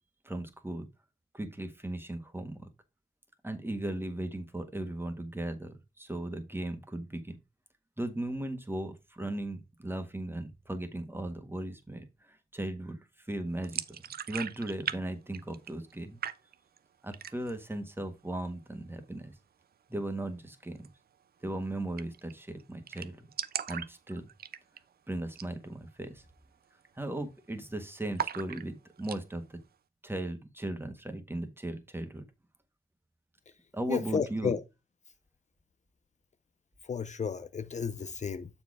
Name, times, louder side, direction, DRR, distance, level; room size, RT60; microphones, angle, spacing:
voice 1, 0.2-0.9 1.3-2.7 3.4-7.4 8.0-13.8 14.3-16.2 17.0-19.3 19.9-20.9 21.4-23.2 23.7-24.2 25.1-26.2 27.0-29.6 30.0-32.2 33.7-34.6, right 1 dB, 15° right, 1.5 m, -37 dB
sound 1, 13.6-15.0 15.2-16.0 16.2-16.8 17.1-17.6 18.0-18.1 18.4-19.1 20.7-20.9 21.2-21.3 21.5-21.6 22.0-22.3 22.6-22.7 22.9-24.9 25.3-25.6 25.9-26.0 26.5-26.8 27.1-27.7 28.2-29.2, right 9 dB, 70° right, 0.5 m, -38 dB
voice 2, 33.9-34.6 36.9-38.5, left 6 dB, 45° left, 0.6 m, -32 dB
7.0 x 4.4 x 4.8 m
cardioid pair, 80°, 16 cm